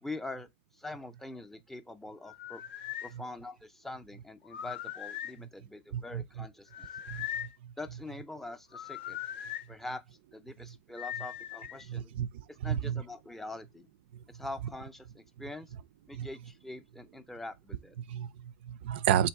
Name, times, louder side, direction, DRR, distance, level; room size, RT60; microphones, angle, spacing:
voice 1, 0.0-0.5 0.7-2.6 3.0-6.9 7.8-9.2 9.7-10.0 10.3-12.1 12.5-13.9 14.3-15.7 16.1-17.9, left 2 dB, 5° left, 0.5 m, -44 dB
sound 1, 2.3-3.1 4.4-5.4 6.7-7.5 8.7-9.6 11.0-11.8, left 11 dB, 70° left, 0.7 m, -40 dB
voice 2, 5.9-6.2 7.1-7.5 11.9-12.3 12.6-13.0 16.1-16.3 18.1-19.3, right 10 dB, 70° right, 0.3 m, -31 dB
3.4 x 2.9 x 4.5 m
supercardioid pair, 145°, 6 cm